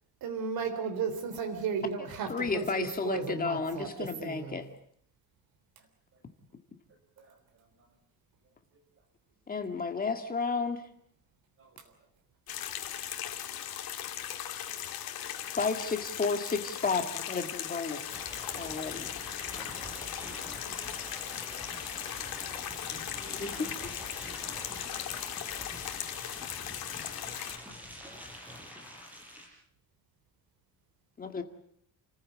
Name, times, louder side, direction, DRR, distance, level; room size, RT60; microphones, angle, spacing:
voice 1, 0.2-4.6, right 6 dB, 70° right, 5 dB, 3.7 m, -34 dB
voice 2, 2.3-4.7 9.5-10.8 15.5-18.0 18.6-19.1 23.2-23.7 31.2-31.4, left 4 dB, 25° left, 6 dB, 2.0 m, -32 dB
voice 3, 7.2-7.9 8.7-8.8 11.6-11.9 14.3-14.4 14.7-15.2 18.0-18.7 19.9-20.0 21.0-21.3 21.5-21.8 22.9-23.5, right 4 dB, 35° right, 3 dB, 6.8 m, -62 dB
sound 1, 12.5-27.6, left 10 dB, 70° left, 2.5 m, -38 dB
sound 2, 18.1-29.5, equal, 5° right, 5.3 m, -45 dB
29.5 x 15.0 x 8.6 m, 0.67 s
cardioid pair, 175°, 37 cm